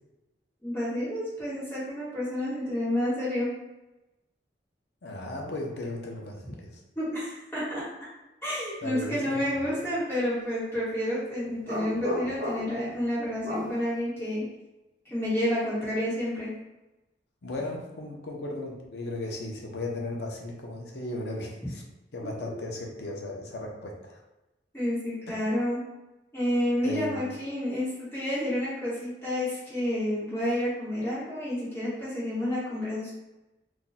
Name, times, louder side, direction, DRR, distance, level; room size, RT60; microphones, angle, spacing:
voice 1, 0.6-3.5 7.0-7.8 8.4-14.4 15.1-16.5 22.2-22.5 24.7-25.8 26.3-33.1, left 1 dB, 15° left, -10 dB, 1.0 m, -30 dB
voice 2, 5.0-6.8 8.8-9.7 17.4-21.8 22.1-24.2 25.3-25.4 26.8-27.2, left 2 dB, 75° left, 0 dB, 0.6 m, -36 dB
sound 1, 11.6-12.9 13.4-13.8, left 1 dB, 55° right, 0.9 m, -33 dB
2.5 x 2.2 x 3.9 m, 1.0 s
head